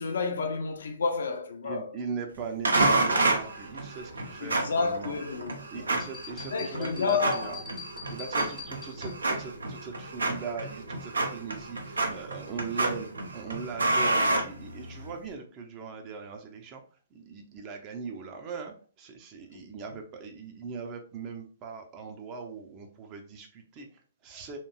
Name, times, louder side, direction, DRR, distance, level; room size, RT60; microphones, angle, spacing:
voice 1, 0.0-1.9 4.4-5.9 6.5-7.6 19.5-19.7, left 5 dB, 65° left, 0.5 m, -30 dB
voice 2, 1.6-5.2 5.7-7.6 8.1-16.8 17.1-24.6, right 5 dB, 30° right, 0.6 m, -40 dB
sound 1, 2.6-15.1, right 2 dB, 75° right, 0.6 m, -30 dB
sound 2, 6.0-9.3, left 6 dB, 10° left, 0.6 m, -44 dB
2.9 x 2.5 x 2.3 m
figure-of-eight pair, 120°, 0 cm